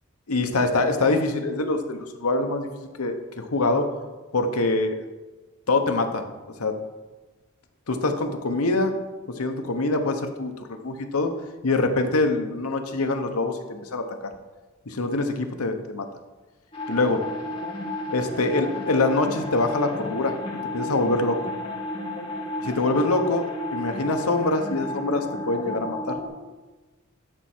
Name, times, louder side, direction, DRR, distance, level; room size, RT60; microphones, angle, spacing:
voice 1, 0.3-2.7 3.0-3.9 4.3-5.1 5.7-6.3 6.6-6.8 7.9-8.9 9.3-10.5 10.8-11.3 11.6-14.1 14.9-16.1 16.9-17.2 18.1-20.4 20.7-21.4 22.6-26.2, left 2 dB, 80° left, 6 dB, 0.9 m, -24 dB
sound 1, 16.7-26.3, left 1 dB, 25° left, 2.1 m, -32 dB
12.5 x 4.6 x 4.3 m, 1.2 s
head